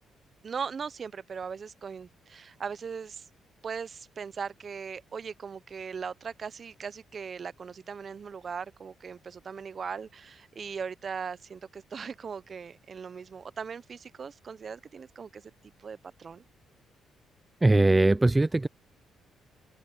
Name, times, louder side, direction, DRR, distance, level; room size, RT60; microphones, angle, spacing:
voice 1, 0.4-3.3 3.6-15.4 15.8-16.4, right 6 dB, 45° right, 0.7 m, -39 dB
voice 2, 17.6-18.7, right 2 dB, 15° right, 0.4 m, -21 dB
open air
cardioid pair, 90°, 0 cm